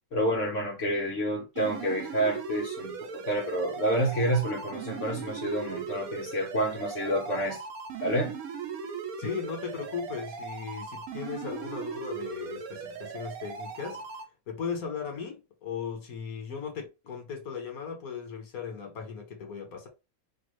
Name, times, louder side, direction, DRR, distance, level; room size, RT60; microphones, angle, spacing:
voice 1, 0.1-7.6 8.0-8.3, right 1 dB, 60° left, 1.4 m, -29 dB
sound 1, 1.6-14.2, right 6 dB, 80° right, 1.2 m, -39 dB
voice 2, 9.2-14.1 14.5-19.9, left 6 dB, 80° left, 1.7 m, -37 dB
5.2 x 2.4 x 3.2 m
omnidirectional pair, 1.5 m